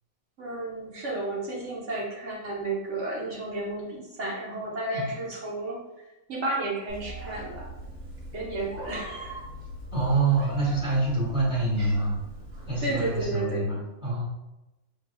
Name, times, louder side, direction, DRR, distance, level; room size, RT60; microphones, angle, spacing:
voice 1, 0.4-5.8 6.3-7.7 8.3-9.4 12.8-13.7, right 2 dB, 60° right, -4 dB, 1.3 m, -32 dB
Meow, 6.9-13.2, right 1 dB, 90° right, 1.7 m, -41 dB
voice 2, 9.9-12.2 12.7-14.3, right 3 dB, 5° right, -6 dB, 1.3 m, -26 dB
5.4 x 3.4 x 2.2 m, 1.0 s
omnidirectional pair, 1.5 m